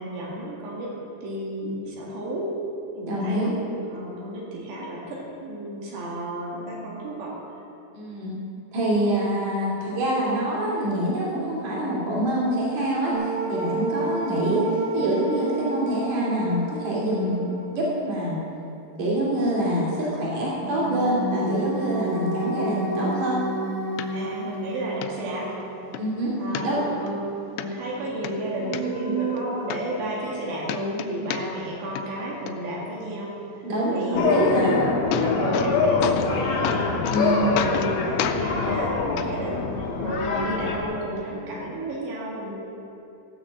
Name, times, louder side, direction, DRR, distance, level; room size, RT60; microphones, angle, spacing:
voice 1, 0.0-2.5 3.0-7.4 8.9-9.1 24.1-25.5 26.4-27.2 27.5-33.4 33.9-36.9 37.4-39.8 40.0-42.6, right 1 dB, 80° right, -3 dB, 4.0 m, -32 dB
voice 2, 3.1-3.5 7.9-8.3 8.7-14.6 14.9-18.4 19.0-23.4 26.0-26.3 26.6-26.8 33.6-34.7 37.1-37.6, right 1 dB, 45° right, -5 dB, 3.6 m, -25 dB
sound 1, 13.1-18.3 20.5-26.7 27.0-27.1 28.5-29.4, right 2 dB, 65° right, 2.1 m, -31 dB
sound 2, 24.0-24.1 24.5-24.6 25.0-25.1 25.6-26.0 26.5-27.1 27.6-27.7 28.1-28.8 29.4-29.5 29.7-30.4 30.6-31.7 32.0-32.5 34.5-34.6 34.9-35.7 36.0-36.4 36.6-37.2 37.6-37.9 38.2-38.4 39.2-39.3 40.2-40.3, left 10 dB, 90° left, 2.8 m, -30 dB
sound 3, 34.1-40.8, left 4 dB, 70° left, 2.7 m, -24 dB
15.5 x 6.5 x 7.2 m, 2.8 s
omnidirectional pair, 4.9 m